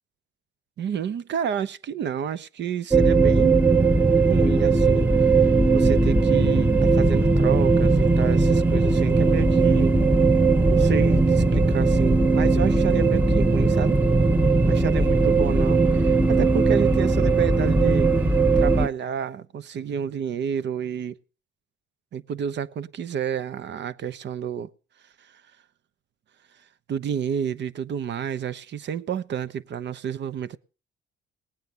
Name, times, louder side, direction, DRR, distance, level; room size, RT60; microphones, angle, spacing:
voice 1, 0.8-3.6 4.1-5.1 5.7-10.0 10.7-14.0 14.7-18.1 18.6-21.2 22.1-24.7 26.9-30.6, right 8 dB, 65° right, 0.9 m, -30 dB
sound 1, 2.9-18.9, right 3 dB, 10° right, 0.9 m, -19 dB
18.5 x 9.1 x 6.8 m
cardioid pair, 90°, 20 cm